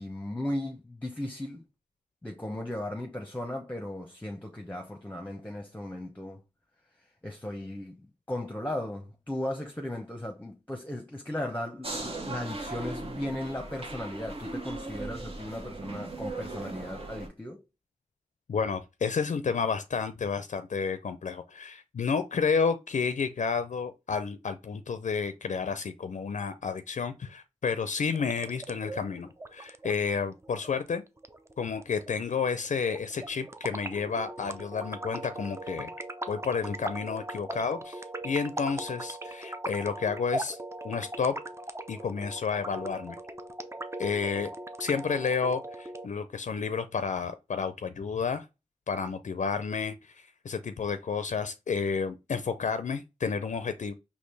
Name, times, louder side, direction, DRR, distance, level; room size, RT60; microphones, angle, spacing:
voice 1, 0.0-1.6 2.2-6.4 7.2-8.0 8.3-17.6, left 1 dB, 15° left, 0.9 m, -36 dB
sound 1, 11.8-17.3, right 2 dB, 45° right, 1.2 m, -38 dB
voice 2, 18.5-31.0 31.6-35.9 36.3-40.6 40.8-41.3 41.9-43.2 44.0-44.5 44.8-48.5 48.9-53.9, left 5 dB, 70° left, 0.5 m, -31 dB
sound 2, 28.1-46.1, right 1 dB, 20° right, 0.6 m, -40 dB
4.3 x 2.9 x 3.2 m
cardioid pair, 50°, 13 cm